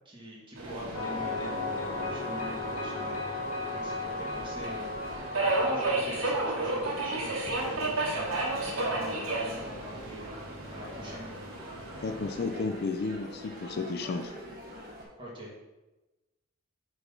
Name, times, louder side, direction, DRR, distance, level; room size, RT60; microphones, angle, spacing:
voice 1, 0.0-3.2 3.7-8.3 8.7-10.4 10.7-11.4 15.2-15.5, equal, 20° right, -5 dB, 1.6 m, -43 dB
sound 1, 0.6-15.0, equal, 45° right, 1.4 m, -46 dB
Subway metro underground, 0.6-12.6, right 2 dB, 70° right, 1.6 m, -33 dB
sound 2, 0.9-8.5, left 3 dB, 85° left, 1.2 m, -36 dB
voice 2, 12.0-14.3, left 3 dB, 45° left, 6 dB, 0.4 m, -32 dB
5.7 x 4.0 x 5.3 m, 1.1 s
head